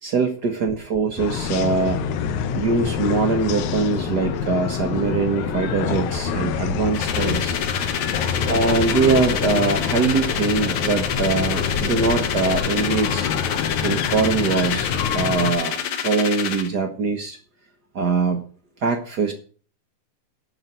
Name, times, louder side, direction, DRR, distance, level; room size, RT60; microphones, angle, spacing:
voice 1, 0.0-2.0 2.5-7.6 8.5-13.3 13.8-17.4 17.9-18.4 18.8-19.3, right 4 dB, 65° right, 5 dB, 1.0 m, -22 dB
sound 1, 1.2-15.5, left 7 dB, 75° left, 2.1 m, -26 dB
sound 2, 6.9-16.7, left 8 dB, 55° left, 1.7 m, -28 dB
11.5 x 5.3 x 8.0 m, 0.42 s
omnidirectional pair, 3.5 m